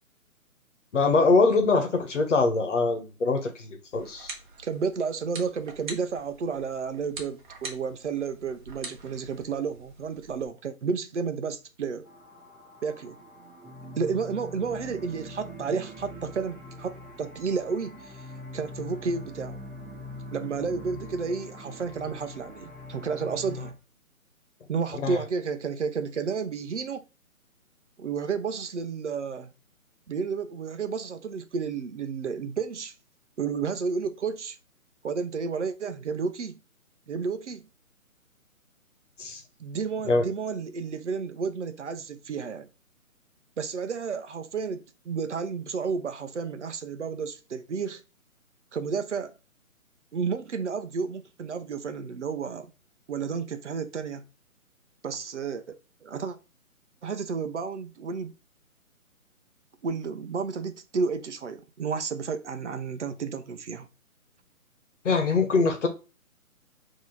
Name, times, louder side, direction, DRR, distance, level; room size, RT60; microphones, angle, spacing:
voice 1, 0.9-4.3 25.0-25.2 39.2-39.4 40.1-40.2 65.0-65.9, left 3 dB, 55° left, 1.4 m, -23 dB
sound 1, 3.9-10.5, right 3 dB, 35° right, 1.0 m, -44 dB
voice 2, 4.6-12.0 12.8-13.2 14.0-18.2 18.5-19.6 20.3-23.7 24.7-27.0 28.0-29.5 30.1-32.9 33.4-34.6 35.0-36.6 37.1-37.7 39.6-42.7 43.6-48.0 48.7-49.3 50.1-52.7 53.1-54.3 55.0-55.6 56.0-56.4 57.0-58.3 59.8-63.9, right 5 dB, 55° right, 0.7 m, -31 dB
sound 2, 12.0-23.7, left 1 dB, ahead, 1.5 m, -43 dB
4.1 x 3.0 x 3.9 m
figure-of-eight pair, 145°, 43 cm